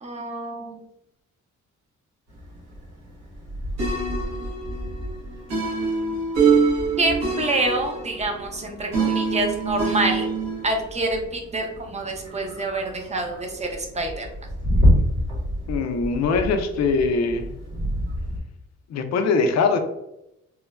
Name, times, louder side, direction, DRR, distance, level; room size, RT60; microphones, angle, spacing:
voice 1, 0.0-0.8 7.0-10.3 10.6-14.3, right 2 dB, 20° right, 3 dB, 0.6 m, -26 dB
sound 1, 2.3-18.4, equal, 90° right, 1.1 m, -29 dB
sound 2, 3.8-10.6, right 5 dB, 60° right, 1.2 m, -25 dB
voice 2, 15.7-17.5 18.9-19.8, left 4 dB, 60° left, 6 dB, 0.5 m, -22 dB
3.1 x 2.1 x 2.3 m, 0.85 s
cardioid pair, 90°, 30 cm